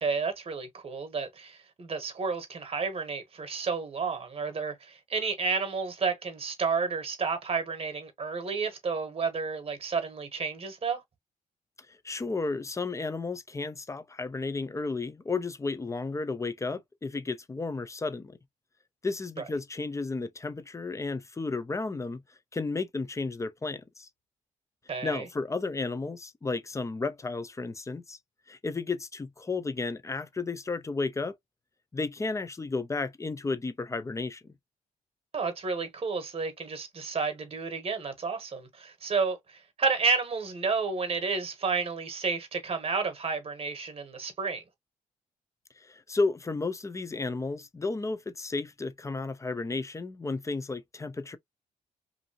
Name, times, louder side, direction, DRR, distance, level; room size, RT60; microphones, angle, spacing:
voice 1, 0.0-11.0 24.9-25.3 35.3-44.6, right 4 dB, 40° right, 1.0 m, -31 dB
voice 2, 12.0-18.4 19.0-22.2 22.5-24.1 25.0-28.2 28.5-31.4 31.9-34.5 45.8-51.4, left 3 dB, 20° left, 0.5 m, -33 dB
2.6 x 2.6 x 2.7 m
cardioid pair, 80°, 15 cm